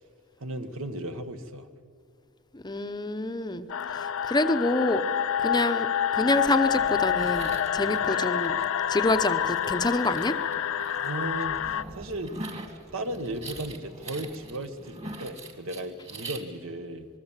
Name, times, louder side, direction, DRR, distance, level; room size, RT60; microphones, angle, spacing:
voice 1, 0.4-1.7 7.8-8.0 11.0-12.3 12.9-17.1, right 1 dB, 65° right, 8 dB, 1.5 m, -35 dB
voice 2, 2.5-3.7 3.9-5.0 5.4-5.9 6.1-8.6 8.9-10.4, left 2 dB, 20° left, 9 dB, 0.8 m, -26 dB
sound 1, 3.7-11.8, left 9 dB, 65° left, 0.5 m, -28 dB
sound 2, 6.3-16.4, right 2 dB, 30° right, 2.1 m, -43 dB
27.0 x 20.5 x 7.4 m, 2.3 s
head